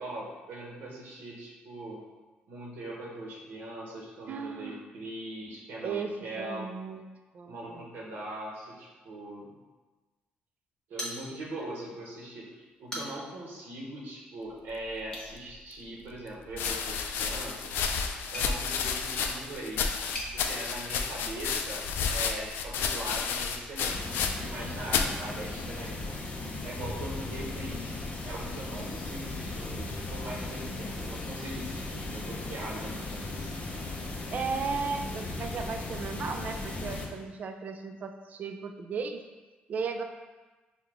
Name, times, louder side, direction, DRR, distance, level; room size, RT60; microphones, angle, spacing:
voice 1, 0.0-2.0 2.5-6.7 7.4-9.5 10.9-17.8 18.3-19.9 20.3-26.3 26.6-27.9 28.2-33.9, right 1 dB, 70° right, -3 dB, 0.8 m, -41 dB
voice 2, 4.3-4.8 5.8-6.1 6.4-7.1 7.3-7.9 33.9-34.0 34.3-39.2 39.7-40.0, right 5 dB, 50° right, 6 dB, 0.4 m, -35 dB
sound 1, 11.0-11.7 12.1-12.2 12.7-13.4 15.0-15.3 16.6-20.3, equal, 20° left, 0.9 m, -42 dB
sound 2, 15.4-15.5 16.5-24.6 24.9-25.2 25.9-26.4, left 6 dB, 80° left, 0.3 m, -31 dB
sound 3, 23.9-37.1, left 2 dB, 40° left, 0.6 m, -37 dB
4.8 x 2.2 x 3.5 m, 1.2 s
cardioid pair, 100°, 4 cm